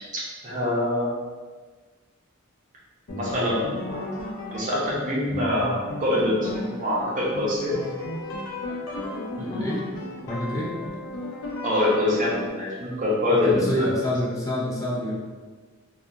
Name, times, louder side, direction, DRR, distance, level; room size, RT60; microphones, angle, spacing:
voice 1, 0.4-1.1 3.1-7.8 11.6-13.9, left 1 dB, 40° right, -5 dB, 0.7 m, -25 dB
sound 1, 3.1-12.5, left 1 dB, 75° left, 0.6 m, -35 dB
voice 2, 9.4-9.9 10.3-10.7 13.3-15.2, left 1 dB, 15° left, -5 dB, 0.3 m, -27 dB
2.7 x 2.4 x 2.3 m, 1.4 s
head